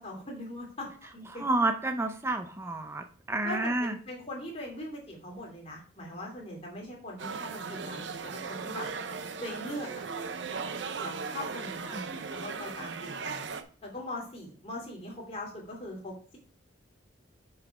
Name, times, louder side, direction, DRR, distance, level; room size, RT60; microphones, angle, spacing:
voice 1, 0.0-1.4 3.4-8.9 9.4-9.9 11.0-13.4 13.8-16.4, left 1 dB, 30° left, -2 dB, 2.7 m, -41 dB
voice 2, 1.4-3.9 11.9-12.0, right 2 dB, 15° right, 7 dB, 0.5 m, -30 dB
sound 1, 7.2-13.6, right 5 dB, 70° right, 0.7 m, -37 dB
6.7 x 5.7 x 4.8 m, 0.43 s
head